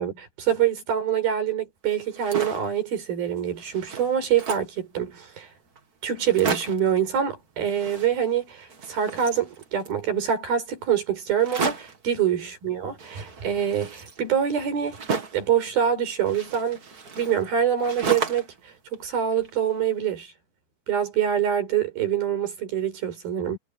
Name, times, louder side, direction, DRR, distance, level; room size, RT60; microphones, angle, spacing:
voice 1, 0.0-5.5 6.0-15.0 15.3-16.8 17.2-20.3 20.9-23.6, right 9 dB, 85° right, 6.7 m, -25 dB
sound 1, 2.0-2.7 3.2-3.3 3.6-4.8 5.4-5.5 5.8-5.9 6.2-6.9 7.6-8.4 8.7-10.0 11.4-12.0 13.0-15.5 16.3-18.6 18.9-19.8, right 5 dB, 35° right, 1.7 m, -33 dB
omnidirectional pair, 4.2 m